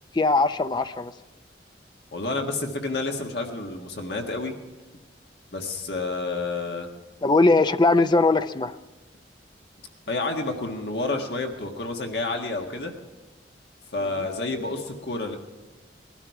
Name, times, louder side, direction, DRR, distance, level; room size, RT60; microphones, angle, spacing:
voice 1, 0.1-1.1 7.2-8.8 14.2-14.3, left 3 dB, 25° left, 11 dB, 0.5 m, -20 dB
voice 2, 2.1-4.5 5.5-6.9 10.1-12.9 13.9-15.4, left 3 dB, 65° left, 3 dB, 1.6 m, -29 dB
21.0 x 12.5 x 4.7 m, 1.2 s
head